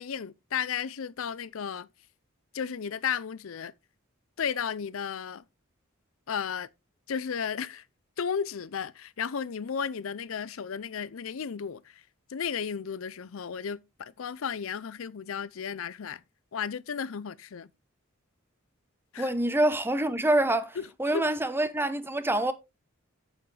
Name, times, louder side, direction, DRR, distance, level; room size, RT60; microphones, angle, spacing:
voice 1, 0.0-1.9 2.5-3.7 4.4-5.4 6.3-6.7 7.1-7.8 8.2-12.0 12.3-16.2 16.5-17.7 19.1-19.3 20.8-20.9 21.1-21.2, left 7 dB, 75° left, 0.5 m, -34 dB
voice 2, 19.2-22.5, right 1 dB, 10° right, 0.8 m, -26 dB
8.4 x 8.3 x 3.3 m
head